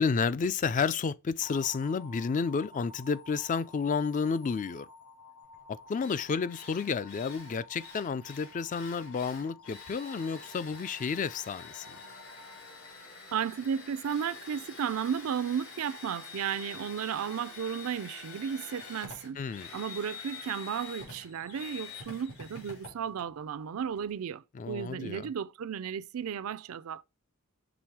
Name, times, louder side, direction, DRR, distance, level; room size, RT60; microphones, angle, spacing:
voice 1, 0.0-4.9 5.7-11.9 19.4-19.7 24.5-25.3, left 5 dB, 35° left, 0.3 m, -31 dB
sound 1, 1.4-13.6, left 3 dB, 55° left, 1.1 m, -52 dB
Drill, 5.5-5.6 6.0-24.1, left 4 dB, 80° left, 3.2 m, -47 dB
voice 2, 13.3-19.4 19.7-27.0, right 7 dB, 75° right, 0.4 m, -34 dB
6.1 x 3.5 x 4.7 m
head